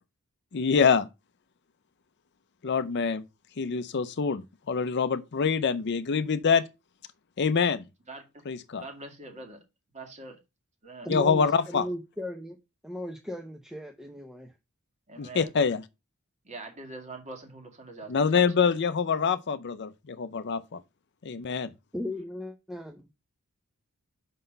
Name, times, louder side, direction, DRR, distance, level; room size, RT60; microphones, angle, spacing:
voice 1, 0.5-1.1 2.6-3.2 3.6-6.6 7.4-7.8 8.5-8.9 11.1-11.9 15.2-15.8 18.1-20.8 21.2-21.7, left 5 dB, 50° left, 0.5 m, -25 dB
voice 2, 8.5-9.6 9.9-10.4 10.8-11.1 15.1-15.5 16.5-18.4, right 2 dB, 30° right, 1.9 m, -43 dB
voice 3, 11.0-12.6 12.8-14.5 21.9-23.1, left 1 dB, 5° right, 0.7 m, -36 dB
5.9 x 5.6 x 5.3 m
head